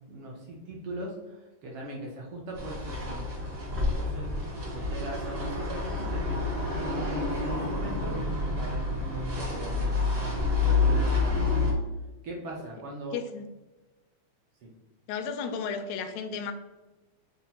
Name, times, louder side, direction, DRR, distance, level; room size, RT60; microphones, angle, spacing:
voice 1, 0.1-3.3 3.8-4.3 4.7-10.2 10.5-11.4 12.2-13.2 14.6-14.7, right 1 dB, 70° right, -2 dB, 1.4 m, -40 dB
sound 1, 2.5-11.7, left 3 dB, 45° right, 0.8 m, -28 dB
voice 2, 13.1-13.5 15.1-16.5, left 6 dB, 80° left, 8 dB, 1.7 m, -33 dB
5.9 x 2.1 x 4.1 m, 1.1 s
omnidirectional pair, 3.4 m